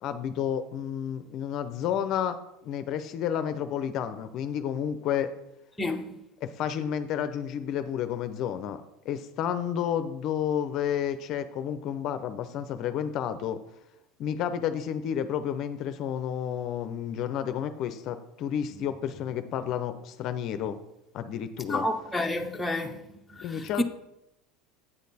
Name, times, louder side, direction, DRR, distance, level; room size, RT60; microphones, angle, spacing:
voice 1, 0.0-2.4 2.6-5.3 6.4-13.6 14.2-20.8 21.1-21.9 23.4-23.8, left 9 dB, 50° left, 0.5 m, -31 dB
voice 2, 5.8-6.1 21.7-23.0 23.3-23.8, left 1 dB, 5° left, 0.7 m, -30 dB
8.8 x 6.4 x 4.1 m
supercardioid pair, 120°, 0 cm